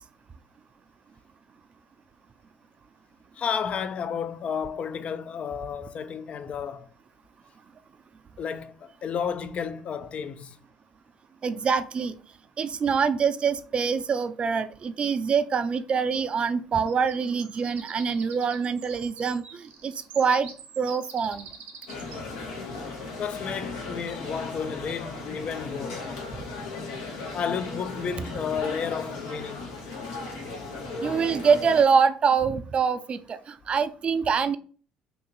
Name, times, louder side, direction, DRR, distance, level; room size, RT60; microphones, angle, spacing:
voice 1, 3.3-6.9 8.4-10.6 23.2-26.0 27.3-29.8, left 7 dB, 50° left, 0.4 m, -32 dB
voice 2, 11.4-12.2 12.6-21.5 31.0-34.6, right 6 dB, 40° right, 0.4 m, -25 dB
sound 1, 16.9-22.2, right 6 dB, 70° right, 0.8 m, -45 dB
sound 2, 21.9-31.8, left 3 dB, 85° left, 0.9 m, -36 dB
2.8 x 2.8 x 3.9 m
hypercardioid pair, 65°, 3 cm